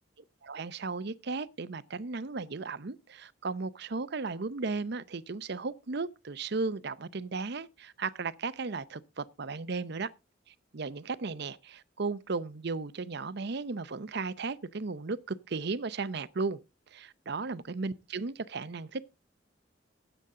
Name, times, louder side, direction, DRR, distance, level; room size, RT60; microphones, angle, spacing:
voice 1, 0.4-10.1 10.5-16.6 16.9-19.0, right 4 dB, 60° right, 0.7 m, -35 dB
15.5 x 8.1 x 3.8 m
head